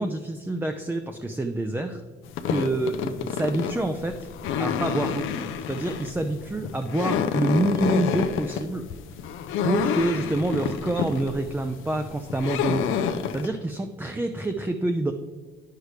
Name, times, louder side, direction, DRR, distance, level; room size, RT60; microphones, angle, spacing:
voice 1, 0.0-2.0 2.5-4.3 4.6-5.3 5.7-8.8 9.6-12.9 13.3-15.1, right 2 dB, 10° right, 5 dB, 0.5 m, -27 dB
sound 1, 2.3-13.5, left 7 dB, 85° left, 0.6 m, -29 dB
9.6 x 6.6 x 3.2 m, 1.5 s
cardioid pair, 90°, 20 cm